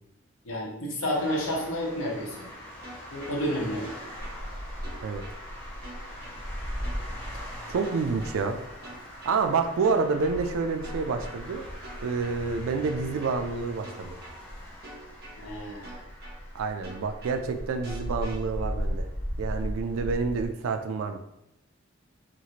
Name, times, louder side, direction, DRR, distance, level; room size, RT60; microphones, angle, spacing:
voice 1, 0.4-2.4 3.1-4.0 15.4-16.0, equal, 80° left, -2 dB, 0.8 m, -30 dB
sound 1, 1.1-20.5, equal, 10° left, 0.6 m, -38 dB
sound 2, 2.8-3.4 3.8-4.4 4.8-5.4 5.8-6.4 6.8-7.4 7.8-8.4 8.8-9.4 9.8-10.4 10.8-11.4 11.8-12.4 12.8-13.4 13.8-14.4 14.8-15.4 15.8-16.4 16.8-17.4 17.8-18.4, right 1 dB, 50° right, 0.8 m, -45 dB
voice 2, 7.7-8.6 9.3-11.6 12.0-14.2 16.5-19.1 19.4-21.2, right 4 dB, 85° right, 8 dB, 0.3 m, -28 dB
3.0 x 2.4 x 2.8 m, 0.86 s
head